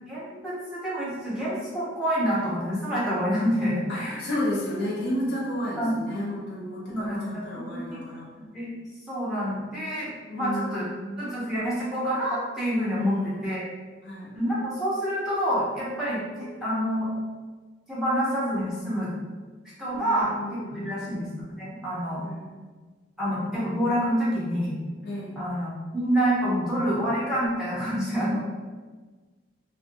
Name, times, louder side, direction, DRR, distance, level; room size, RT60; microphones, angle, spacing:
voice 1, 0.1-4.2 5.8-6.0 6.9-8.0 8.5-10.8 11.2-13.1 13.4-13.6 14.3-17.1 17.9-19.1 19.8-22.2 23.2-24.8 25.4-28.4, equal, 5° right, -9 dB, 0.7 m, -27 dB
voice 2, 3.9-8.3 10.3-11.1 12.9-13.6 14.0-14.3 19.9-21.2 22.2-22.7 25.0-25.4, left 1 dB, 65° left, -6 dB, 0.6 m, -32 dB
2.6 x 2.6 x 2.6 m, 1.4 s
head